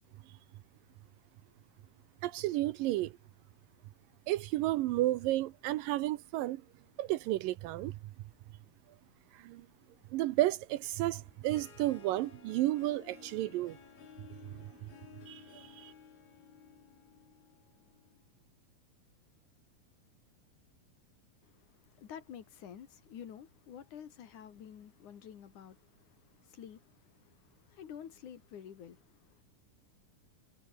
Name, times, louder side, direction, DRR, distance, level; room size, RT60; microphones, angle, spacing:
voice 1, 2.2-3.1 4.3-6.6 7.0-8.0 9.3-9.7 10.1-13.8 14.8-14.9 15.3-15.9, right 16 dB, 75° right, 2.3 m, -32 dB
Harp, 11.2-18.3, left 7 dB, 85° left, 5.6 m, -56 dB
voice 2, 21.4-29.4, left 9 dB, 60° left, 3.2 m, -50 dB
omnidirectional pair, 4.2 m